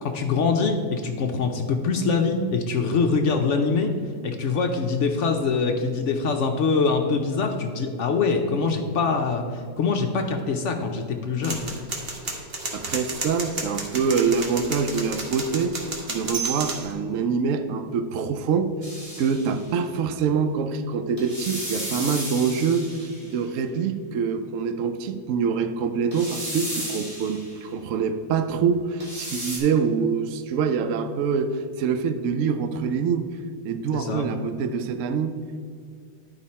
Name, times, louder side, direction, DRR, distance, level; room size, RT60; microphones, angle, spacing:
voice 1, 0.0-3.9 4.2-11.6 33.9-34.3, left 4 dB, 65° left, 4 dB, 0.7 m, -24 dB
sound 1, 11.4-16.9, right 3 dB, 40° right, 1.3 m, -32 dB
voice 2, 12.7-15.8 16.1-18.7 19.2-33.3 33.6-35.3, right 6 dB, 65° right, 9 dB, 0.8 m, -25 dB
sound 2, 18.8-19.7 21.2-23.4 26.1-27.6 29.0-29.6, equal, 20° right, 1.8 m, -34 dB
10.5 x 4.9 x 4.2 m, 2.1 s
omnidirectional pair, 1.9 m